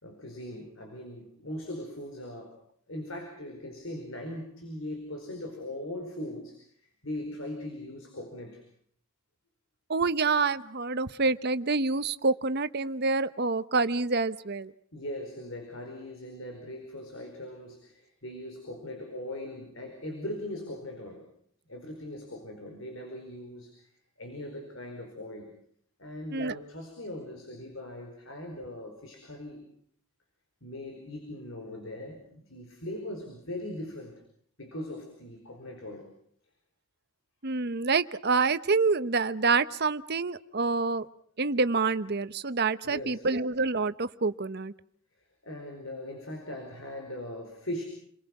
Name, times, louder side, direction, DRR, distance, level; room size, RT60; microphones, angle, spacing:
voice 1, 0.0-2.6 2.9-6.7 7.0-8.6 14.9-21.3 21.7-23.9 24.2-25.5 26.0-29.7 30.6-34.2 34.6-36.1 42.8-43.2 45.4-47.8, left 1 dB, 60° left, 3 dB, 4.8 m, -40 dB
voice 2, 9.9-14.7 26.3-26.6 37.4-41.1 41.4-44.7, right 4 dB, 50° right, 13 dB, 1.0 m, -27 dB
29.5 x 22.5 x 6.1 m, 0.64 s
head